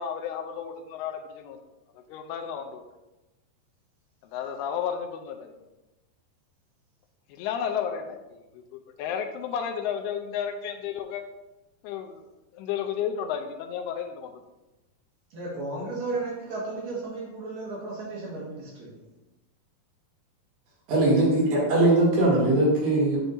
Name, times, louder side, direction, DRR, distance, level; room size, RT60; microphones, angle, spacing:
voice 1, 0.0-1.6 2.1-2.8 4.3-5.5 7.3-8.4 9.0-11.2 11.8-12.3 12.5-14.3, left 8 dB, 85° left, 5 dB, 2.5 m, -32 dB
voice 2, 15.3-19.0 21.0-21.5, right 3 dB, 55° right, -5 dB, 2.5 m, -34 dB
voice 3, 20.9-23.2, right 2 dB, 75° right, -5 dB, 4.4 m, -21 dB
11.0 x 4.5 x 2.7 m, 1.0 s
omnidirectional pair, 4.7 m